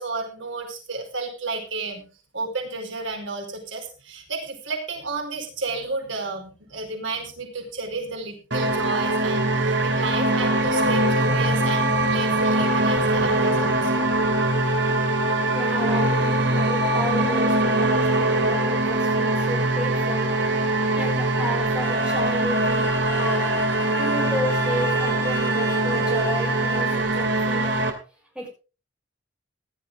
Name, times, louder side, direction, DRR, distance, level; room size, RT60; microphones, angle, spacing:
voice 1, 0.0-2.1 2.3-14.1, right 3 dB, 85° right, 3 dB, 4.7 m, -32 dB
sound 1, 8.5-27.9, right 2 dB, 65° right, 3.0 m, -22 dB
voice 2, 15.5-20.3 20.9-23.5 24.0-27.8 28.3-28.5, equal, 5° right, 0 dB, 6.1 m, -32 dB
sound 2, 21.8-26.8, left 4 dB, 10° left, 1.8 m, -37 dB
17.0 x 12.0 x 3.6 m, 0.33 s
head